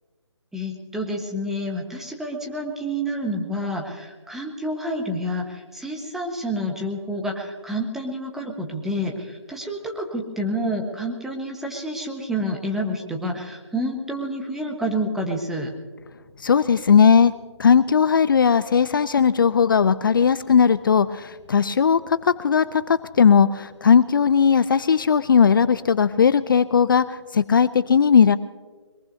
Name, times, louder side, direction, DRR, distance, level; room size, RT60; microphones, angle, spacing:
voice 1, 0.5-15.7, equal, ahead, 1 dB, 1.2 m, -29 dB
voice 2, 16.4-17.3 17.6-28.4, left 6 dB, 45° left, 15 dB, 0.4 m, -18 dB
22.0 x 21.5 x 2.7 m, 1.5 s
figure-of-eight pair, 150°, 15 cm